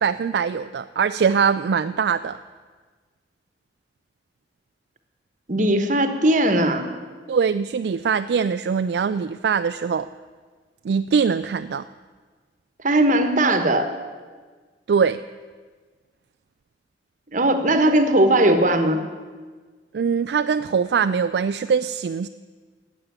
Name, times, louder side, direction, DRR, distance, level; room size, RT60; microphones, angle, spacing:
voice 1, 0.0-2.4 7.3-10.1 10.8-11.9 14.9-15.2 19.9-22.3, right 6 dB, 65° right, 11 dB, 0.3 m, -22 dB
voice 2, 5.5-6.9 12.8-13.9 17.3-19.0, right 1 dB, 45° right, 8 dB, 1.2 m, -18 dB
12.5 x 8.3 x 8.9 m, 1.5 s
head